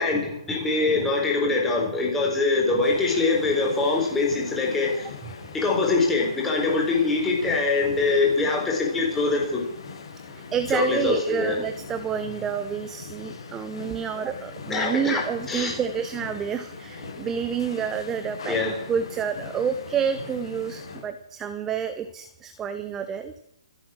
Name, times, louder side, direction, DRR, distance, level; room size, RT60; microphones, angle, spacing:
voice 1, 0.0-5.1 5.5-9.6 10.7-11.6 14.7-15.8 18.5-18.8, left 3 dB, 5° left, -1 dB, 4.0 m, -23 dB
sound 1, 2.8-21.1, left 4 dB, 55° left, 6.8 m, -41 dB
voice 2, 10.3-18.6 18.9-23.3, right 7 dB, 10° right, 10 dB, 0.6 m, -29 dB
26.0 x 8.6 x 6.2 m, 0.76 s
hypercardioid pair, 165°, 3 cm